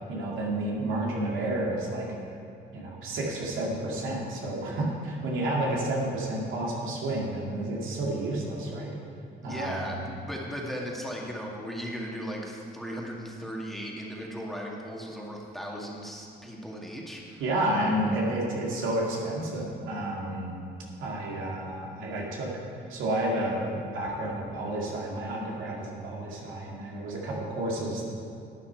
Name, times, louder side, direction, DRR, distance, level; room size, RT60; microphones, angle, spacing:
voice 1, 0.1-2.1 2.7-9.0 9.4-10.1 17.4-20.6 21.0-22.5 22.9-28.0, right 1 dB, 85° right, -3 dB, 2.2 m, -30 dB
voice 2, 9.4-17.4, equal, ahead, -2 dB, 1.9 m, -37 dB
12.0 x 8.7 x 4.6 m, 2.6 s
cardioid pair, 90°, 20 cm